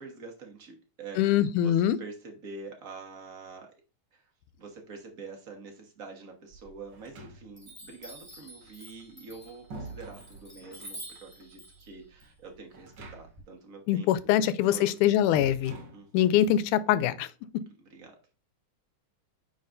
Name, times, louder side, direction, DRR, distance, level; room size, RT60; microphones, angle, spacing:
voice 1, 0.0-3.7 4.1-4.2 4.6-14.4 14.7-15.1 15.9-16.1 17.8-18.2, right 4 dB, 75° right, 0.7 m, -46 dB
voice 2, 1.2-2.0 13.9-15.7 16.1-17.3, left 11 dB, 80° left, 2.0 m, -23 dB
Chime, 6.5-7.2 7.6-13.4, right 1 dB, 5° right, 2.8 m, -48 dB
sound 1, 6.9-7.8 9.0-10.9 12.7-13.5 13.8-13.9 15.3-16.4, right 3 dB, 60° right, 1.2 m, -45 dB
9.6 x 4.2 x 2.6 m
omnidirectional pair, 3.7 m